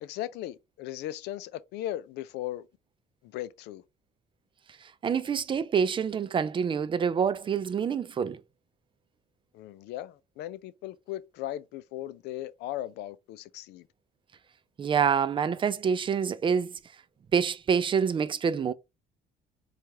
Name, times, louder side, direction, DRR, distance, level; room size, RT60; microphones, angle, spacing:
voice 1, 0.0-2.7 3.2-3.8 9.5-13.9, left 13 dB, 85° left, 0.4 m, -37 dB
voice 2, 5.0-8.4 14.8-16.7 17.3-18.7, right 7 dB, 30° right, 0.4 m, -26 dB
4.6 x 2.4 x 2.7 m
cardioid pair, 110°, 17 cm